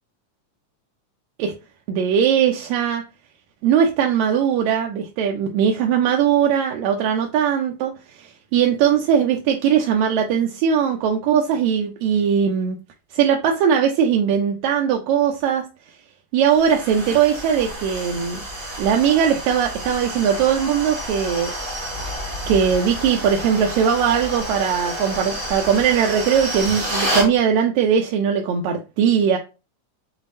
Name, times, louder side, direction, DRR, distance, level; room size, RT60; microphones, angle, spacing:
voice 1, 1.9-3.0 3.6-7.9 8.2-12.8 13.1-15.6 16.3-18.4 18.8-21.5 22.5-29.4, right 8 dB, 80° right, 1.7 m, -19 dB
sound 1, 16.4-27.3, right 1 dB, 35° right, 1.1 m, -29 dB
6.8 x 2.7 x 2.6 m
omnidirectional pair, 3.5 m